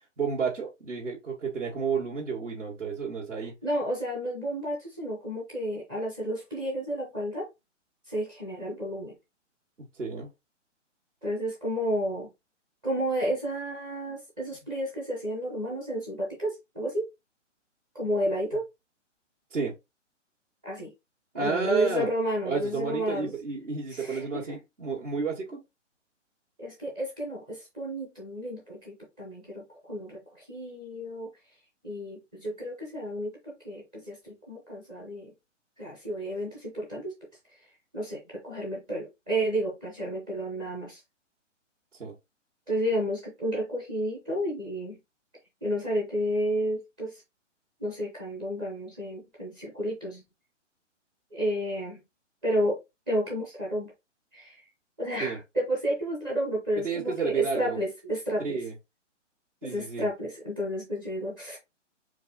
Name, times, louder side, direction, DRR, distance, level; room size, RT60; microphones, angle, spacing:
voice 1, 0.2-3.5 9.9-10.3 19.5-19.7 21.3-22.1 22.4-25.6 42.0-42.1 55.2-55.4 56.8-57.8 58.4-58.7 59.6-60.1, right 5 dB, 75° right, 1.9 m, -31 dB
voice 2, 3.6-7.5 8.1-9.2 11.2-12.3 12.8-17.0 17.9-18.6 20.6-20.9 21.3-23.3 23.9-24.6 26.6-31.3 31.8-35.3 35.8-37.1 37.9-41.0 42.7-45.0 45.6-47.2 47.8-50.2 51.3-52.0 52.4-52.8 53.1-53.9 54.3-54.6 55.0-58.6 59.6-61.6, equal, 5° right, 0.4 m, -31 dB
4.6 x 2.6 x 4.0 m
figure-of-eight pair, 130°, 37 cm